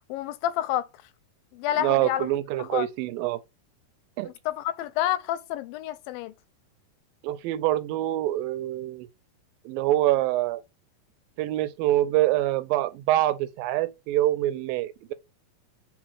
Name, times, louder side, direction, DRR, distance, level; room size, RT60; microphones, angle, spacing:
voice 1, 0.1-0.9 1.5-2.3 2.6-2.9 4.2-6.3, left 13 dB, 90° left, 2.4 m, -29 dB
voice 2, 1.7-3.4 4.2-4.3 7.2-9.1 9.7-10.6 11.4-15.1, right 15 dB, 85° right, 2.4 m, -25 dB
5.0 x 4.0 x 4.7 m
omnidirectional pair, 4.1 m